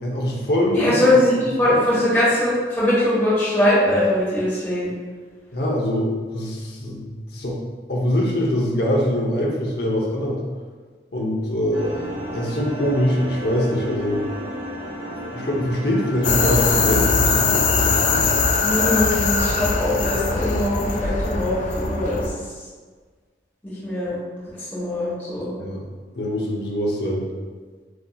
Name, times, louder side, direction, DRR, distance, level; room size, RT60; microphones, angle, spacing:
voice 1, 0.0-1.0 1.7-1.8 5.5-7.6 7.9-10.4 11.1-12.0 12.3-14.2 15.3-18.3 25.6-25.8 26.2-27.3, equal, 60° left, -2 dB, 0.9 m, -23 dB
voice 2, 0.7-4.9 18.6-22.4 23.6-24.2 24.6-25.5, left 1 dB, 10° left, -10 dB, 1.3 m, -21 dB
sound 1, 11.7-17.0, equal, 70° right, 1.5 m, -32 dB
sound 2, 16.2-22.3, left 4 dB, 40° left, 0.4 m, -21 dB
7.9 x 2.9 x 2.4 m, 1.5 s
head